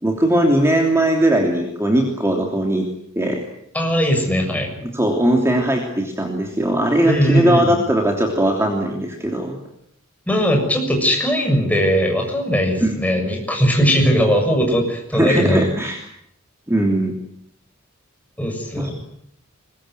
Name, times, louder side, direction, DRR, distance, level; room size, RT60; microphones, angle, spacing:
voice 1, 0.0-2.9 3.1-3.4 4.8-9.6 12.8-13.0 15.1-16.0 16.7-17.1 18.8-18.9, right 1 dB, 15° right, 2 dB, 3.1 m, -19 dB
voice 2, 3.7-4.7 7.0-7.8 10.3-15.7 18.4-18.9, equal, 5° left, 2 dB, 7.0 m, -19 dB
23.5 x 21.5 x 9.4 m, 0.75 s
head